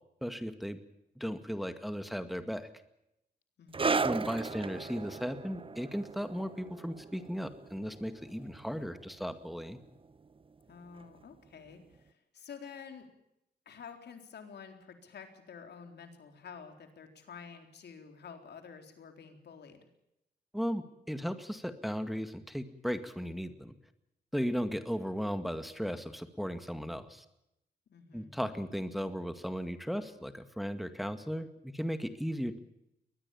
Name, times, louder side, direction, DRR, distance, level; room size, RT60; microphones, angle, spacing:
voice 1, 0.2-0.8 1.2-2.7 4.0-9.8 20.5-23.7 24.3-27.2 28.1-32.6, equal, ahead, 9 dB, 2.0 m, -36 dB
voice 2, 3.6-4.1 10.7-13.1 13.7-19.9 27.9-28.4, left 6 dB, 75° left, 6 dB, 3.9 m, -50 dB
sound 1, 3.7-10.7 11.0-11.2 12.0-12.1, right 4 dB, 30° right, 0.9 m, -37 dB
22.5 x 20.0 x 7.2 m, 0.82 s
cardioid pair, 95°, 17 cm